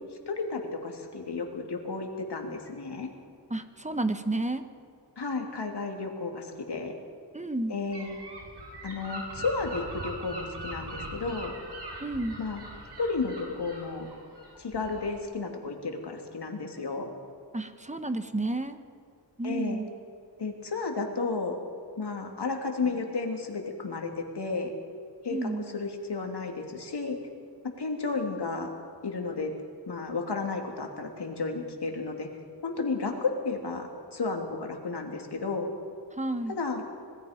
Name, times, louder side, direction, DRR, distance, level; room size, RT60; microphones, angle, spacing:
voice 1, 0.3-3.1 5.2-6.9 7.7-8.2 8.8-11.5 12.4-12.6 13.0-14.1 14.6-17.1 19.4-19.8 20.4-21.6 22.0-24.7 25.2-27.2 27.6-28.7 29.0-29.5 29.9-32.3 32.6-35.7 36.6-36.8, left 4 dB, 65° left, 3 dB, 3.0 m, -32 dB
voice 2, 3.5-4.6 7.3-7.7 12.0-12.4 17.5-18.8 19.4-19.9 25.3-25.6 36.2-36.6, right 2 dB, 15° right, 8 dB, 1.2 m, -31 dB
Gull seagull / Wind, 7.9-15.2, right 1 dB, 65° right, 6.3 m, -41 dB
26.0 x 20.5 x 5.3 m, 2.4 s
wide cardioid pair, 125°, 43 cm